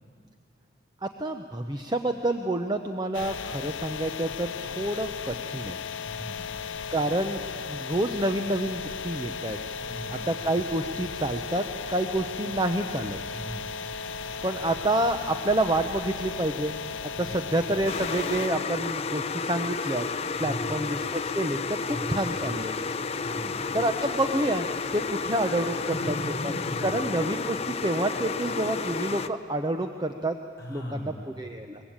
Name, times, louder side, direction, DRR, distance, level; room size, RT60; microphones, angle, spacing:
voice 1, 1.0-5.8 6.9-7.4 7.7-9.6 10.3-13.2 14.4-16.8 17.2-20.0 20.4-22.7 23.7-24.7 24.9-25.8 26.1-26.2 26.4-26.5 26.8-30.3 30.7-31.8, right 1 dB, 20° right, 6 dB, 0.7 m, -28 dB
sound 1, 3.1-18.5, left 5 dB, 80° left, 0.5 m, -36 dB
voice 2, 6.0-6.4 9.8-10.2 13.2-13.6 17.1-17.4 20.3-20.8 21.9-22.1 23.2-23.8 25.9-26.0 26.4-26.9 30.6-31.1, left 1 dB, 15° left, -5 dB, 6.2 m, -38 dB
sound 2, 11.0-11.5 13.0-14.0 15.7-27.1, equal, 55° right, 2.7 m, -57 dB
sound 3, 17.9-29.3, left 4 dB, 30° left, 0.6 m, -31 dB
23.5 x 21.5 x 8.8 m, 2.5 s
head